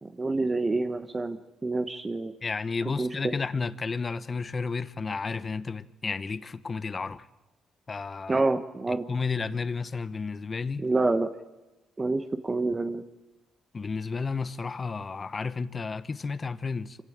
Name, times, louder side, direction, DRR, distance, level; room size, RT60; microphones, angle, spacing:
voice 1, 0.0-2.3 3.0-3.1 8.3-9.0 10.8-11.3 12.0-13.0, right 3 dB, 25° right, 1.2 m, -27 dB
voice 2, 2.4-7.3 7.9-8.4 8.9-10.9 13.7-17.0, left 4 dB, 35° left, 1.0 m, -32 dB
25.5 x 16.0 x 8.7 m
cardioid pair, 90°, 0 cm